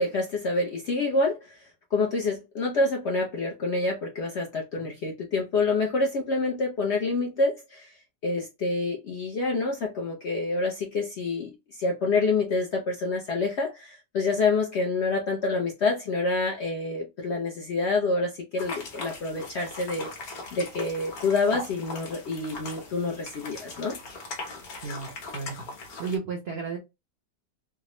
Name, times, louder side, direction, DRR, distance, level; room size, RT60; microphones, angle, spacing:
voice 1, 0.0-1.6 1.9-7.9 8.2-11.5 11.8-20.1 20.5-23.9, left 3 dB, 80° left, 0.6 m, -27 dB
sound 1, 18.6-26.2, left 3 dB, 60° left, 1.3 m, -40 dB
voice 2, 24.8-25.7 26.0-26.8, right 5 dB, 70° right, 0.6 m, -33 dB
3.4 x 2.0 x 2.9 m
omnidirectional pair, 1.9 m